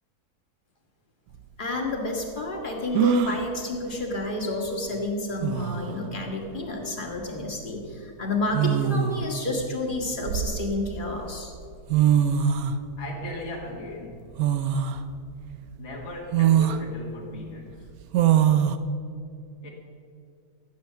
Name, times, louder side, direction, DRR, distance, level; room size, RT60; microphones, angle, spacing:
sound 1, 1.3-1.4 2.9-3.4 5.0-5.1 5.4-5.9 7.2-7.4 8.5-9.3 9.9-11.0 11.6-11.7 11.9-12.8 14.4-15.0 15.5-15.6 16.3-16.8 18.1-18.8, right 9 dB, 70° right, 1.1 m, -22 dB
voice 1, 1.6-11.5, left 2 dB, 30° left, 0 dB, 2.1 m, -30 dB
voice 2, 13.0-14.3 15.8-17.9 19.6-19.7, left 2 dB, 45° left, -2 dB, 1.7 m, -38 dB
14.5 x 9.0 x 6.8 m, 2.4 s
omnidirectional pair, 1.7 m